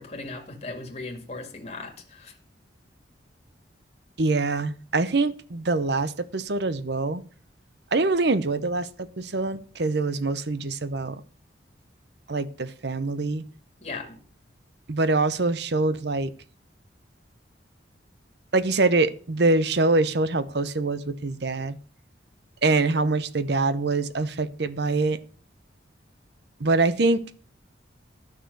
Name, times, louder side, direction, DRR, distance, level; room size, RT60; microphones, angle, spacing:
voice 1, 0.0-2.3 13.8-14.2, left 3 dB, 35° left, 2.2 m, -37 dB
voice 2, 4.2-7.2 7.9-11.2 12.3-13.4 14.9-16.3 18.5-21.8 22.6-25.2 26.6-27.2, right 3 dB, 60° right, 0.8 m, -24 dB
11.5 x 6.5 x 6.8 m
head